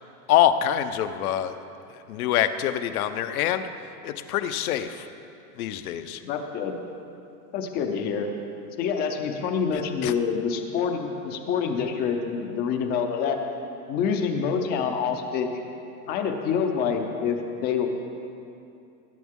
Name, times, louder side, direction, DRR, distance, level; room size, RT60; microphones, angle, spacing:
voice 1, 0.3-1.5 1.9-3.7 4.0-5.1 5.6-6.2 9.7-10.1, left 11 dB, 65° left, 10 dB, 0.8 m, -25 dB
voice 2, 6.2-6.8 7.5-8.3 8.8-13.4 13.9-15.6 16.1-17.9, left 6 dB, 20° left, 5 dB, 0.6 m, -26 dB
20.0 x 9.2 x 3.6 m, 2.7 s
supercardioid pair, 160°, 47 cm